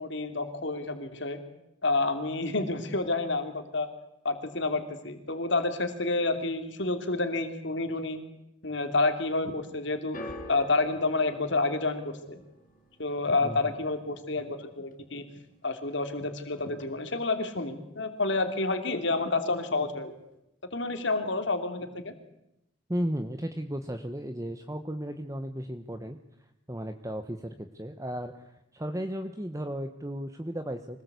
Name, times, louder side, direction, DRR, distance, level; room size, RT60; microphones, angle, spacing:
voice 1, 0.0-1.4 1.8-3.9 4.2-8.2 8.6-10.2 10.5-12.4 13.0-15.2 15.6-20.1 20.7-22.1, left 3 dB, 60° left, 7 dB, 3.0 m, -29 dB
sound 1, 10.1-16.4 16.7-17.3 18.1-18.2, left 1 dB, 40° left, 4.4 m, -48 dB
voice 2, 22.9-26.2 26.7-31.0, equal, 15° right, 7 dB, 1.1 m, -35 dB
25.0 x 19.5 x 8.3 m, 0.85 s
head